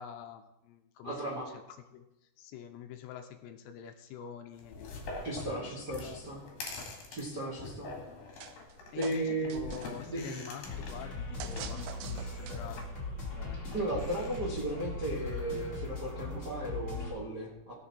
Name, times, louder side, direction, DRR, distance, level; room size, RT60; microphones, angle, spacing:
voice 1, 0.0-1.4 1.9-2.0 2.4-5.0 5.6-6.2 8.9-13.6, left 8 dB, 85° left, 7 dB, 2.7 m, -46 dB
voice 2, 1.0-1.5 5.2-6.4 7.1-7.9 8.9-9.7 10.0-10.4 13.7-17.7, right 1 dB, 55° right, -5 dB, 1.1 m, -35 dB
sound 1, 4.6-14.4, left 2 dB, 50° left, 3.0 m, -45 dB
sound 2, 8.4-8.7 9.0-10.1 11.4-12.8, right 10 dB, 85° right, 3.0 m, -45 dB
sound 3, 10.6-17.1, left 3 dB, 20° left, 2.2 m, -39 dB
18.0 x 6.9 x 4.3 m, 0.92 s
omnidirectional pair, 5.2 m